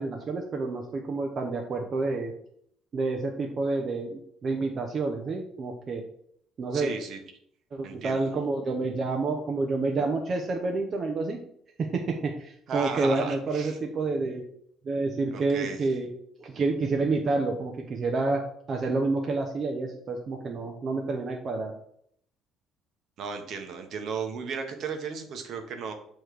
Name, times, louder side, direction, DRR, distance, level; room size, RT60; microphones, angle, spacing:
voice 1, 0.0-2.3 2.9-6.0 6.6-6.9 7.7-11.4 11.8-14.4 14.8-16.1 16.4-18.4 18.7-21.7, right 3 dB, 40° right, 2 dB, 0.7 m, -29 dB
voice 2, 6.7-7.2 7.8-8.3 12.7-13.8 15.3-15.9 23.2-25.9, right 5 dB, 60° right, 5 dB, 1.0 m, -35 dB
6.9 x 3.1 x 4.7 m, 0.68 s
cardioid pair, 115°, 0 cm